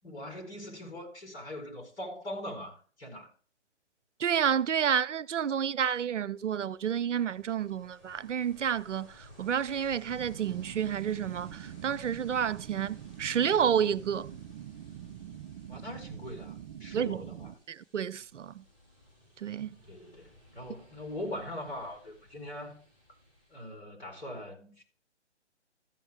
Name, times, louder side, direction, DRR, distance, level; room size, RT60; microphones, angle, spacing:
voice 1, 0.0-3.3 15.7-17.5 19.9-22.8 23.5-24.8, left 1 dB, 65° left, 4.6 m, -41 dB
voice 2, 4.2-9.1 9.4-14.3 16.9-17.2 17.7-18.6 19.4-19.8, right 8 dB, 85° right, 0.6 m, -30 dB
Ocean, 6.4-23.7, left 1 dB, 20° left, 5.3 m, -58 dB
sound 1, 10.1-17.5, right 10 dB, 40° right, 0.9 m, -44 dB
14.5 x 7.1 x 3.5 m
figure-of-eight pair, 145°, 35 cm